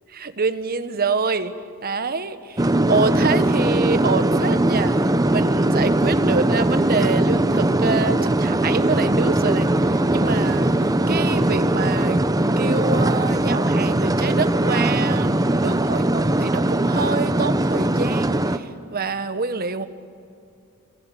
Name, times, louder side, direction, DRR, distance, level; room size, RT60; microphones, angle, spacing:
voice 1, 0.1-1.5 1.8-5.0 5.3-12.2 12.6-19.9, right 4 dB, 45° right, 11 dB, 1.1 m, -26 dB
sound 1, 2.6-18.6, right 1 dB, 15° right, 0.7 m, -20 dB
25.5 x 24.5 x 8.3 m, 2.5 s
head